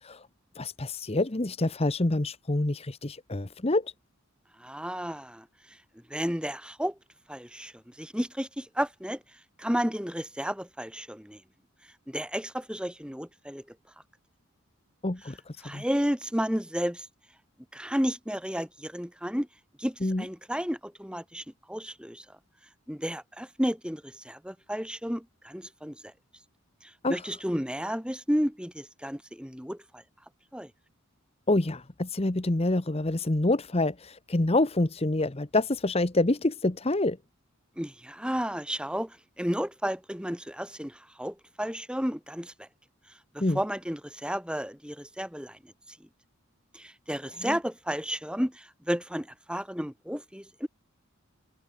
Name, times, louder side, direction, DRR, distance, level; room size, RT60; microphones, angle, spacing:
voice 1, 0.5-3.9 15.0-15.8 20.0-20.2 27.0-27.2 31.5-37.2 43.4-43.6 47.4-47.6, left 2 dB, 30° left, 0.9 m, -27 dB
voice 2, 4.6-5.4 6.1-6.9 7.3-7.7 8.0-9.2 9.6-11.4 12.1-13.6 15.6-17.1 17.7-19.5 19.8-22.2 22.9-26.0 26.8-30.0 30.5-30.7 37.8-42.7 43.3-45.7 46.7-50.7, equal, 5° right, 5.8 m, -32 dB
head